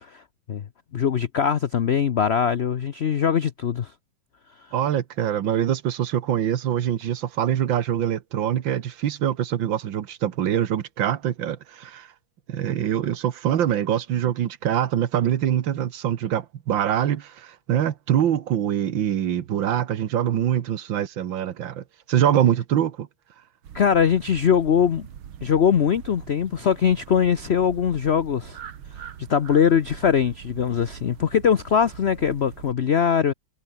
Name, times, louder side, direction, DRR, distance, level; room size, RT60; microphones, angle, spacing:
voice 1, 0.9-3.9 23.7-25.1 25.4-28.6 29.3-33.3, left 7 dB, 80° left, 0.5 m, -21 dB
voice 2, 4.7-12.1 12.5-23.1, right 10 dB, 70° right, 1.8 m, -24 dB
sound 1, 23.6-32.7, right 9 dB, 85° right, 2.3 m, -43 dB
omnidirectional pair, 2.2 m